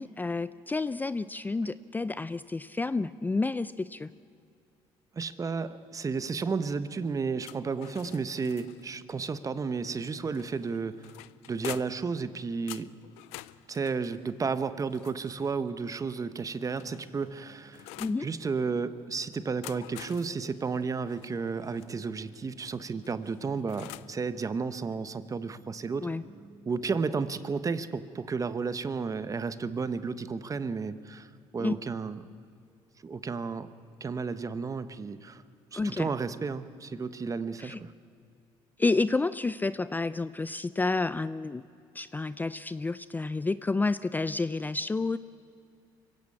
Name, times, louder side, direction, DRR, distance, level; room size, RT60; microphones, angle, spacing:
voice 1, 0.0-4.1 18.0-18.3 26.0-26.2 31.6-31.7 35.7-36.1 37.6-37.8 38.8-41.6 41.9-45.2, left 3 dB, 15° left, 15 dB, 0.5 m, -30 dB
voice 2, 5.1-11.0 11.5-12.9 13.7-17.8 18.2-26.1 26.7-32.2 33.0-33.7 34.0-35.4 35.7-37.9, right 5 dB, 30° right, 13 dB, 1.1 m, -32 dB
sound 1, 7.4-9.0 10.3-12.1 12.7-15.6 16.4-18.3 19.4-21.9 23.0-24.2, left 18 dB, 90° left, 0.5 m, -47 dB
sound 2, 14.2-27.8, right 2 dB, 85° right, 4.2 m, -60 dB
24.5 x 16.0 x 8.7 m, 2.5 s
cardioid pair, 90°, 11 cm